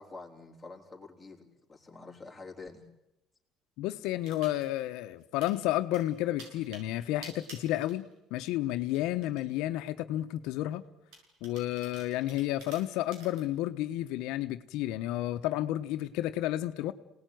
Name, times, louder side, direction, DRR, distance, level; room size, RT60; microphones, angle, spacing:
voice 1, 0.0-2.8, left 3 dB, 5° left, -1 dB, 3.8 m, -47 dB
voice 2, 3.8-10.8 11.4-16.9, left 14 dB, 85° left, 9 dB, 1.0 m, -31 dB
sound 1, 4.2-4.8 5.2-5.6 5.9-8.4 8.7-9.4 10.0-10.1 11.1-13.4, right 3 dB, 80° right, 7.3 m, -50 dB
27.5 x 18.5 x 9.3 m, 0.92 s
cardioid pair, 140°, 0 cm